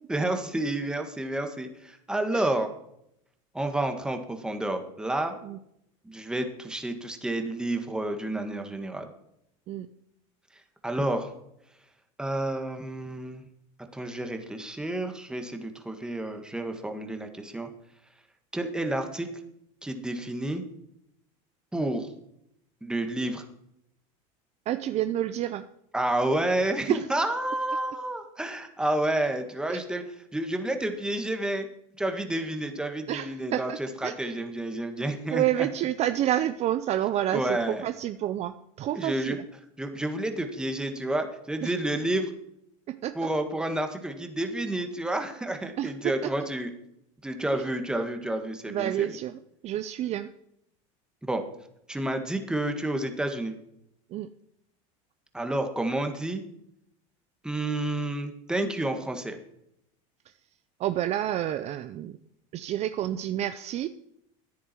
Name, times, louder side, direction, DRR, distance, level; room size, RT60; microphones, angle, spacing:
voice 1, 0.1-2.7 3.5-5.4 6.0-9.0 10.8-11.3 12.2-13.4 13.9-17.7 18.5-19.3 19.8-20.6 21.7-22.1 22.8-23.5 25.9-30.0 30.3-31.7 32.0-35.7 37.3-37.8 38.9-39.4 39.8-42.3 43.1-46.7 47.2-49.2 51.2-51.4 51.9-53.5 55.3-56.4 57.4-59.4, right 1 dB, 5° right, 5 dB, 1.7 m, -30 dB
voice 2, 24.7-25.7 26.9-27.0 29.7-29.8 33.1-33.8 34.0-34.1 35.3-37.6 37.8-39.4 41.6-41.7 42.9-43.3 45.8-46.3 47.5-47.7 48.7-50.3 54.1-54.3 60.8-62.2 62.5-63.9, right 12 dB, 40° right, 11 dB, 0.6 m, -29 dB
13.5 x 10.0 x 4.5 m, 0.76 s
supercardioid pair, 125°, 17 cm